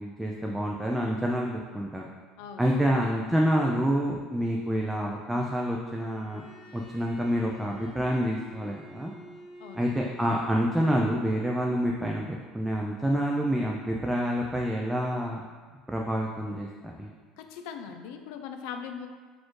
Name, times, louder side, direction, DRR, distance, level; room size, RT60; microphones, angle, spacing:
voice 1, 0.0-2.1 2.6-6.4 6.7-9.1 9.7-12.3 12.5-15.4 15.9-17.1, equal, 5° right, -1 dB, 0.3 m, -27 dB
voice 2, 2.4-3.0 9.6-10.1 17.4-19.1, left 7 dB, 75° left, 6 dB, 0.4 m, -41 dB
Bowed string instrument, 6.0-10.9, equal, 25° left, 1.1 m, -50 dB
4.2 x 2.5 x 4.6 m, 1.5 s
cardioid pair, 140°, 0 cm